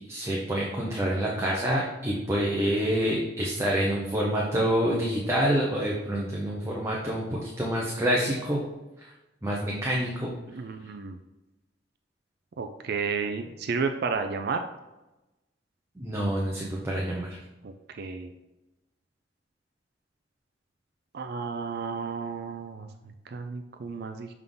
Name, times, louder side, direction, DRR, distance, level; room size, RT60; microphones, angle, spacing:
voice 1, 0.1-8.6 9.0-9.1 9.4-10.3 16.0-17.4, equal, 15° right, -4 dB, 0.8 m, -27 dB
voice 2, 10.5-11.2 12.6-14.6 17.6-18.3 21.1-22.9 23.3-24.3, right 5 dB, 60° right, 6 dB, 0.4 m, -32 dB
6.7 x 3.7 x 3.9 m, 1.0 s
head